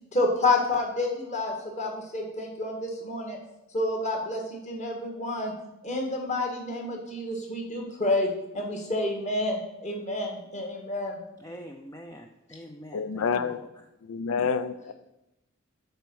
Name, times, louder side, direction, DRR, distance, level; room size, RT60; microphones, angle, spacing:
voice 1, 0.1-3.4 3.7-5.5 5.8-8.3 8.5-11.2, left 2 dB, 35° left, 0 dB, 1.6 m, -29 dB
voice 2, 11.4-13.5, equal, 15° left, 4 dB, 0.4 m, -44 dB
voice 3, 12.9-13.6 14.0-14.9, left 6 dB, 80° left, 13 dB, 0.4 m, -28 dB
7.9 x 4.5 x 6.9 m, 0.92 s
head